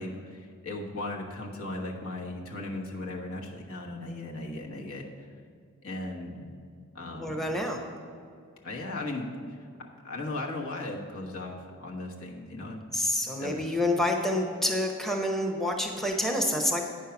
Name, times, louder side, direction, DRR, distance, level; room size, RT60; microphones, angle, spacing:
voice 1, 0.0-5.3 5.8-6.4 6.9-7.5 8.6-9.6 10.0-12.9 13.4-13.8, left 2 dB, 70° left, -1 dB, 1.3 m, -37 dB
voice 2, 7.2-7.8 12.9-16.8, left 1 dB, ahead, 2 dB, 0.7 m, -28 dB
9.1 x 5.5 x 5.8 m, 2.3 s
head